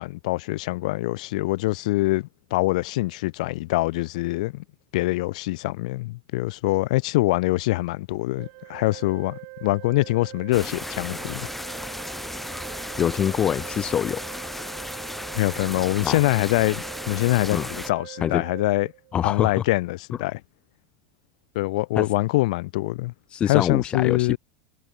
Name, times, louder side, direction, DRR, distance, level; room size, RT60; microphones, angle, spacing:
voice 1, 0.0-4.6 4.9-11.5 15.3-18.9 19.2-20.4 21.5-23.1 23.5-24.4, left 20 dB, 75° left, 0.9 m, -24 dB
Organ, 8.4-19.4, right 40 dB or more, 65° right, 2.4 m, -42 dB
sound 1, 10.5-17.9, left 1 dB, 5° left, 1.9 m, -35 dB
voice 2, 13.0-14.2 16.0-16.2 17.5-17.7 18.2-18.4 19.1-19.6 22.0-22.1 23.3-24.4, left 9 dB, 25° left, 0.3 m, -24 dB
supercardioid pair, 135°, 4 cm